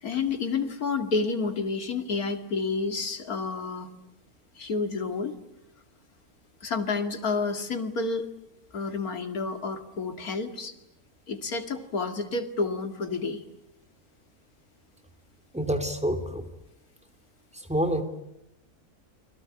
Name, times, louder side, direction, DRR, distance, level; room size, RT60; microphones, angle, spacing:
voice 1, 0.0-3.9 4.6-5.4 6.6-8.3 8.7-10.7 11.3-13.4, left 4 dB, 70° left, 6 dB, 2.8 m, -30 dB
voice 2, 15.5-16.4 17.5-18.0, right 1 dB, 5° right, 7 dB, 2.8 m, -27 dB
30.0 x 22.5 x 8.8 m, 0.84 s
omnidirectional pair, 1.6 m